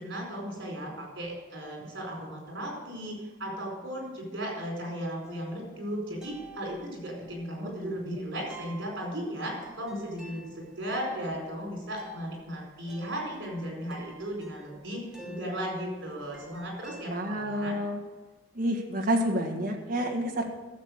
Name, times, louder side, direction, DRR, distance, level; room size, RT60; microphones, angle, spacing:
voice 1, 0.0-17.8, equal, 70° right, -1 dB, 4.6 m, -36 dB
sound 1, 5.2-17.1, right 1 dB, 5° right, 1.4 m, -51 dB
voice 2, 7.6-8.2 17.1-18.0 18.5-20.5, equal, 45° right, 2 dB, 1.6 m, -29 dB
13.5 x 7.2 x 6.5 m, 1.2 s
head